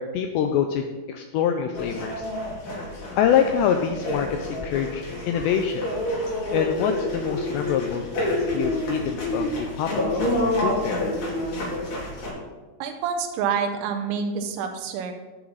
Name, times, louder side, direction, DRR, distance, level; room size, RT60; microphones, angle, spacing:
voice 1, 0.0-2.2 3.2-5.9 6.5-9.9 10.2-11.1, left 8 dB, 90° left, 5 dB, 2.4 m, -25 dB
sound 1, 1.7-12.3, left 1 dB, 45° left, 4.2 m, -28 dB
voice 2, 12.8-15.1, right 6 dB, 90° right, 5 dB, 3.5 m, -27 dB
17.0 x 7.0 x 4.0 m, 1.2 s
omnidirectional pair, 5.7 m